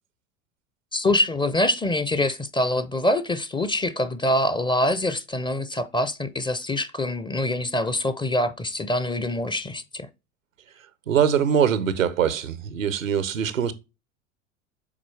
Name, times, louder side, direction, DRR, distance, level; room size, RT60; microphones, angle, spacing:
voice 1, 0.9-10.1, left 1 dB, 10° left, 0.5 m, -25 dB
voice 2, 11.1-13.7, right 8 dB, 90° right, 0.7 m, -22 dB
7.2 x 4.2 x 3.2 m
hypercardioid pair, 80°, 38 cm